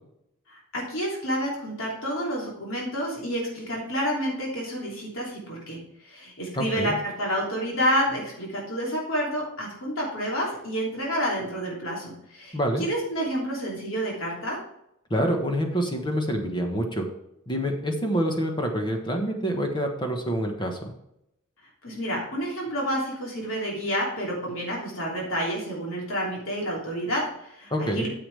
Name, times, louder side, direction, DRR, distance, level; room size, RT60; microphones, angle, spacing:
voice 1, 0.5-5.8 6.0-14.6 21.8-28.1, equal, 75° left, -3 dB, 3.1 m, -29 dB
voice 2, 6.5-6.9 12.5-12.8 15.1-17.1 17.5-20.8 27.7-28.1, equal, 25° left, 3 dB, 1.4 m, -26 dB
9.7 x 7.2 x 3.4 m, 0.79 s
head